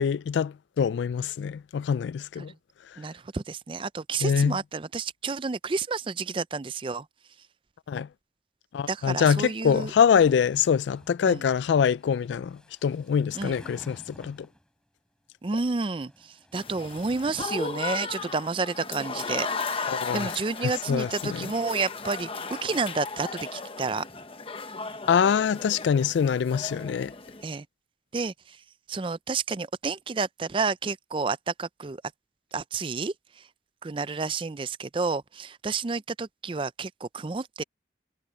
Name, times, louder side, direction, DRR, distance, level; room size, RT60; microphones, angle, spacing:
voice 1, 0.0-2.5 4.2-4.6 7.9-8.1 8.7-14.5 19.9-20.3 20.9-21.5 25.1-27.1, left 7 dB, 80° left, 0.3 m, -24 dB
voice 2, 3.0-7.1 8.9-9.9 11.2-11.4 13.3-13.6 15.4-24.0 27.4-27.7 28.1-28.6 28.9-32.0 32.5-33.1 33.8-37.6, right 4 dB, 30° right, 0.4 m, -30 dB
sound 1, 10.0-14.7 15.7-18.2, equal, 5° left, 7.0 m, -52 dB
Applause / Crowd, 16.5-27.4, left 4 dB, 30° left, 0.9 m, -36 dB
head